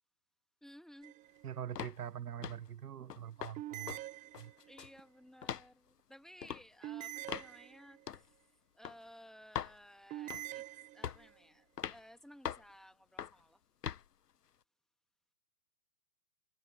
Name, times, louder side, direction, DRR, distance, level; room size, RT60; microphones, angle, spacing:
voice 1, 0.6-1.2 4.7-8.4 8.7-10.6 10.9-13.6, equal, ahead, 2.0 m, -57 dB
sound 1, 1.0-1.6 3.6-4.9 6.8-8.2 10.1-11.4, right 15 dB, 15° right, 0.8 m, -46 dB
voice 2, 1.4-4.0 4.4-4.5, right 9 dB, 70° right, 1.4 m, -44 dB
sound 2, 1.8-2.0 2.4-2.7 3.1-3.6 3.9-4.0 4.3-5.0 5.4-5.7 6.4-6.6 7.3-7.5 8.1-8.3 8.8-9.0 9.5-9.8 10.3-10.6 11.0-11.3 11.8-12.0 12.4-12.7 13.2-13.4 13.8-14.0, left 8 dB, 75° left, 1.3 m, -41 dB
figure-of-eight pair, 120°, 48 cm